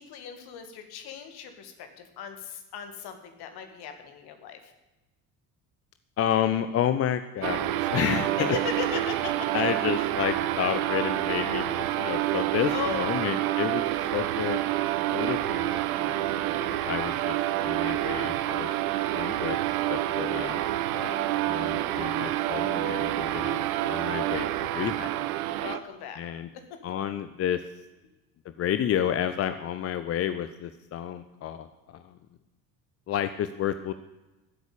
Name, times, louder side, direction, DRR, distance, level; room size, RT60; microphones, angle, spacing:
voice 1, 0.0-4.7 8.3-9.5 12.7-13.2 20.9-21.4 25.6-26.2 26.7-26.8, left 6 dB, 50° left, 7 dB, 2.2 m, -37 dB
voice 2, 6.2-8.6 9.5-13.9 14.1-14.6 15.1-18.7 19.1-19.6 19.9-20.6 21.4-25.2 26.2-26.5 26.8-27.6 28.4-32.2 33.1-33.9, left 10 dB, 30° left, 11 dB, 0.7 m, -30 dB
sound 1, 7.4-25.8, right 14 dB, 60° right, 0.9 m, -28 dB
14.5 x 8.1 x 8.6 m, 1.0 s
figure-of-eight pair, 60°, 49 cm